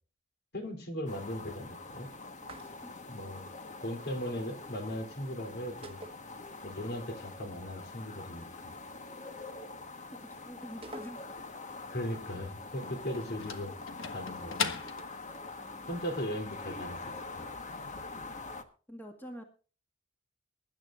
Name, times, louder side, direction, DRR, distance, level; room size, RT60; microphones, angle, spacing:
voice 1, 0.5-2.1 3.1-3.5 3.8-6.0 6.6-8.7 11.9-13.7 14.1-14.8 15.9-17.0 17.3-17.5, equal, 55° left, 7 dB, 3.3 m, -38 dB
sound 1, 1.1-18.6, left 3 dB, 35° left, 1.4 m, -45 dB
sound 2, 2.4-3.1 5.8-6.9 7.1-7.2 10.8-11.6, right 1 dB, 30° right, 1.2 m, -48 dB
voice 2, 10.2-11.2 15.6-15.9 18.1-18.4 18.9-19.4, equal, 10° left, 3 dB, 1.9 m, -47 dB
sound 3, 12.3-15.6, left 5 dB, 70° left, 1.5 m, -38 dB
23.0 x 11.5 x 2.5 m, 0.37 s
head